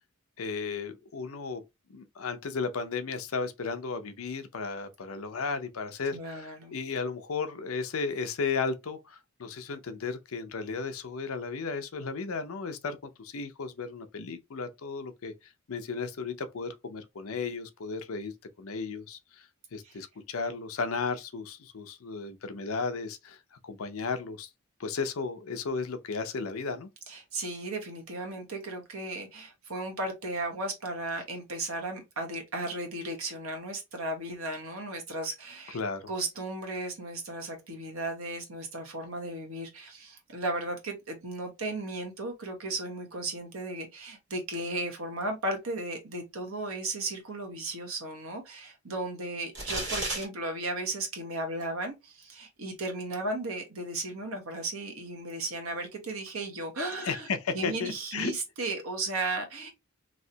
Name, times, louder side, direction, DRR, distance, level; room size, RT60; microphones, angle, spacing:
voice 1, 0.4-1.6 1.9-19.5 19.7-24.5 24.8-26.9 35.7-36.1 57.0-58.3, left 4 dB, 75° left, 0.6 m, -34 dB
voice 2, 6.1-6.7 19.8-20.0 27.1-35.8 36.1-57.3 57.5-59.7, right 2 dB, 75° right, 1.2 m, -35 dB
sound 1, 49.6-50.2, right 2 dB, 55° right, 1.7 m, -32 dB
3.2 x 2.8 x 2.7 m
head